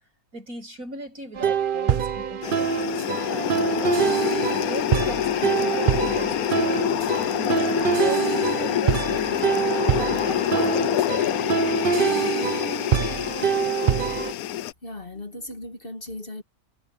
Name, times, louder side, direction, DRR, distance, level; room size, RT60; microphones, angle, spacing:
voice 1, 0.3-4.2 4.7-6.9 7.3-11.1, right 3 dB, 65° right, 8.4 m, -38 dB
sound 1, 1.4-14.3, right 7 dB, 45° right, 0.7 m, -25 dB
sound 2, 2.4-14.7, left 12 dB, 75° left, 1.1 m, -26 dB
voice 2, 14.8-16.4, left 1 dB, 40° left, 2.1 m, -37 dB
omnidirectional pair, 1.6 m